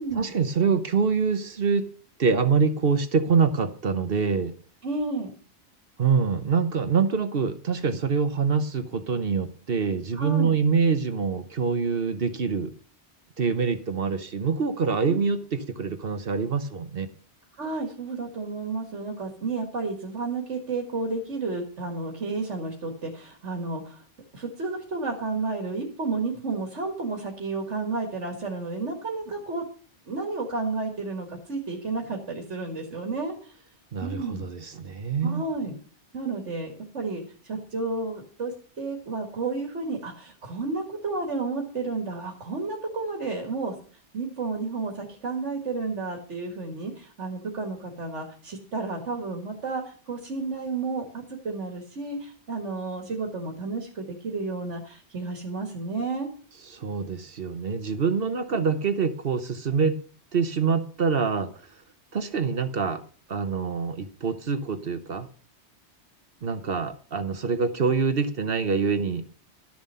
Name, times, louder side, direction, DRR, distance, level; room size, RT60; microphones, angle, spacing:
voice 1, 0.1-1.9 2.2-4.5 6.0-12.7 13.4-17.1 33.9-35.4 56.7-60.0 60.3-61.7 62.1-63.0 63.3-65.3 66.4-69.2, right 5 dB, 55° right, 11 dB, 1.1 m, -25 dB
voice 2, 4.8-5.3 10.1-10.5 15.1-15.2 17.6-24.0 24.3-29.6 30.1-33.5 34.0-34.5 35.2-35.7 36.1-43.7 44.1-56.3 58.5-58.6, right 3 dB, 85° right, 2 dB, 2.2 m, -31 dB
12.5 x 7.3 x 5.5 m, 0.42 s
omnidirectional pair, 1.2 m